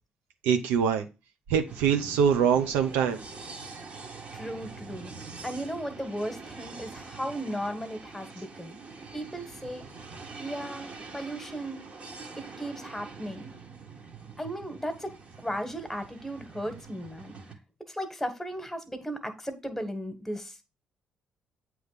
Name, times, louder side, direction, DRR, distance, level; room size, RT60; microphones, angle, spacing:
voice 1, 0.4-1.1 1.5-3.2, right 7 dB, 85° right, 0.8 m, -24 dB
sound 1, 1.7-17.5, right 4 dB, 45° right, 1.6 m, -44 dB
voice 2, 4.3-5.1 5.4-8.8 9.1-9.9 10.4-11.8 12.6-13.5 14.4-15.1 15.4-17.3 17.9-20.6, equal, 10° left, 1.5 m, -36 dB
7.9 x 3.2 x 5.0 m
supercardioid pair, 65°, 3 cm